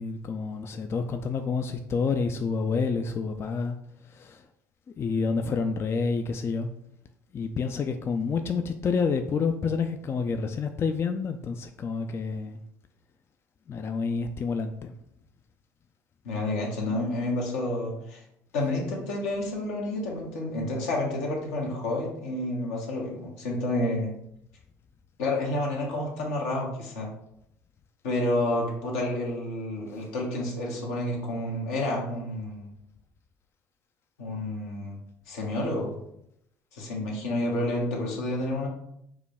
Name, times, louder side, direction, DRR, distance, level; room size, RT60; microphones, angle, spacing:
voice 1, 0.0-3.8 4.1-4.4 5.0-6.7 7.3-12.6 13.7-14.9 18.6-18.7 29.9-30.0, left 5 dB, 30° left, 7 dB, 0.3 m, -29 dB
voice 2, 16.2-18.2 18.5-24.1 25.2-27.1 28.0-32.7 34.2-35.0 35.3-36.0 36.7-38.7, left 1 dB, 70° left, 0 dB, 1.1 m, -29 dB
4.9 x 2.2 x 3.4 m, 0.77 s
hypercardioid pair, 65°, 8 cm